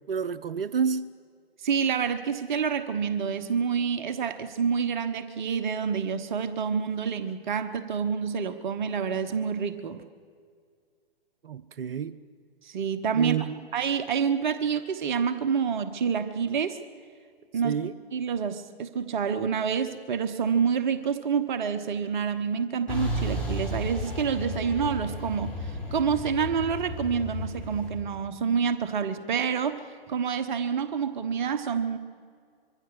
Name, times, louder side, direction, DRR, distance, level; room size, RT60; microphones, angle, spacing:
voice 1, 0.1-1.1 11.4-12.2 13.1-13.6 17.6-17.9, right 7 dB, 65° right, 13 dB, 0.8 m, -29 dB
voice 2, 1.6-10.0 12.6-13.4 13.7-16.8 17.5-17.8 18.1-32.0, right 6 dB, 50° right, 10 dB, 1.2 m, -28 dB
Truck, 22.9-27.9, equal, 5° left, 7.0 m, -33 dB
25.0 x 23.5 x 6.5 m, 2.1 s
figure-of-eight pair, 125°, 31 cm